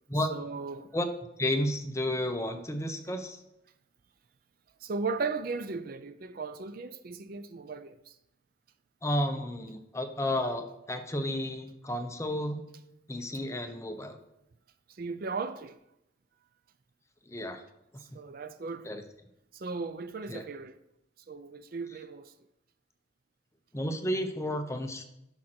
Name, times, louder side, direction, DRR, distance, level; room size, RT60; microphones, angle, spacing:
voice 1, 0.3-0.9 4.8-8.2 14.9-15.8 18.1-18.9 19.5-20.8 21.3-22.3, right 4 dB, 50° right, 0.5 m, -36 dB
voice 2, 1.4-3.4 9.0-12.6 13.1-14.2 17.3-17.6 18.8-19.0 20.3-20.4 23.7-25.0, left 1 dB, 15° left, 0.7 m, -32 dB
10.0 x 6.3 x 4.4 m
head